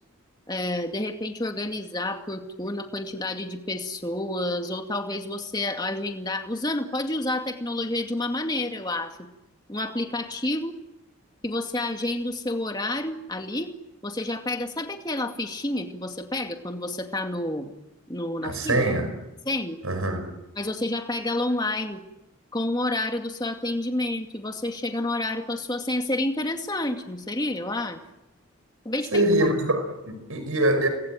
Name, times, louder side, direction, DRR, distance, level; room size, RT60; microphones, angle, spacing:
voice 1, 0.5-9.3 9.7-10.8 11.4-13.7 14.0-17.8 18.1-18.9 19.5-19.8 20.6-22.0 22.5-28.0 28.8-29.3, left 1 dB, 20° left, 2.2 m, -29 dB
voice 2, 18.4-19.1 19.8-20.3 29.1-30.9, right 1 dB, 80° right, 5.5 m, -23 dB
29.5 x 21.5 x 9.1 m
head